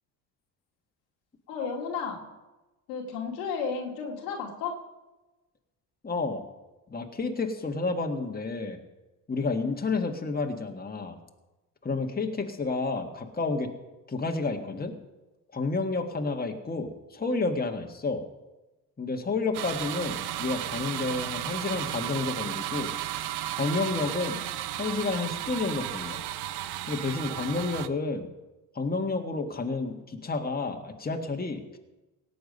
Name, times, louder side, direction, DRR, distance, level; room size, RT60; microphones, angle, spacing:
voice 1, 1.5-2.2 2.9-4.7, left 5 dB, 90° left, -1 dB, 2.3 m, -33 dB
voice 2, 6.0-6.4 6.9-8.8 9.3-11.2 11.8-13.7 14.1-15.0 15.5-18.2 19.0-22.9 23.6-24.4 24.7-26.2 26.9-28.3 28.7-31.8, left 3 dB, 20° left, 3 dB, 1.6 m, -30 dB
sound 1, 19.5-27.9, right 13 dB, 55° right, 0.8 m, -34 dB
17.5 x 7.8 x 5.4 m, 1.1 s
hypercardioid pair, 65°, 47 cm